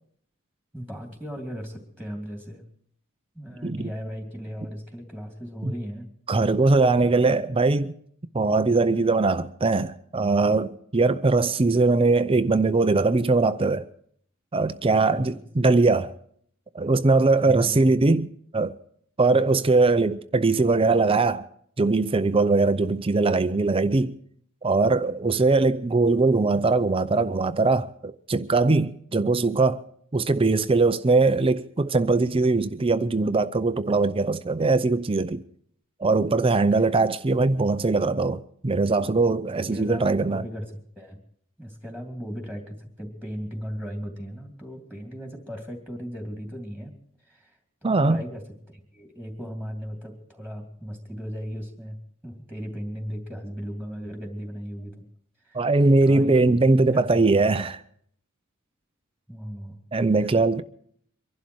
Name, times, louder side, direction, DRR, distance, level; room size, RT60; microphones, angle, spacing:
voice 1, 0.7-2.6 3.3-7.3 15.1-15.4 17.4-17.9 19.3-19.7 39.7-41.2 41.6-46.9 47.2-55.0 55.4-55.6 56.0-56.4 56.8-57.2 59.3-59.8 60.1-60.3, equal, 5° left, 2.8 m, -37 dB
voice 2, 6.3-7.9 8.3-13.9 14.5-16.1 16.7-18.7 19.2-21.4 21.8-24.1 24.6-29.8 30.1-35.4 36.0-40.4 47.8-48.2 55.5-57.8 59.9-60.6, right 3 dB, 25° right, 0.5 m, -21 dB
24.0 x 11.5 x 4.6 m
head